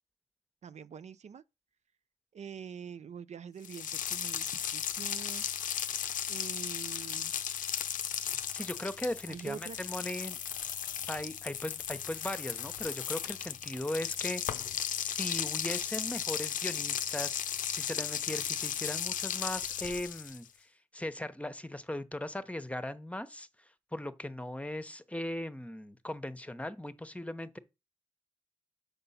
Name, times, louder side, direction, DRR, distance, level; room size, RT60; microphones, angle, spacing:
voice 1, 0.6-1.4 2.3-5.4 6.3-7.3 9.3-9.8, right 7 dB, 55° right, 0.5 m, -45 dB
sound 1, 3.6-20.5, left 9 dB, 85° left, 0.6 m, -35 dB
voice 2, 8.5-10.4 11.1-23.5 23.9-27.6, left 1 dB, 10° left, 0.9 m, -38 dB
6.8 x 5.4 x 5.6 m
cardioid pair, 55°, 13 cm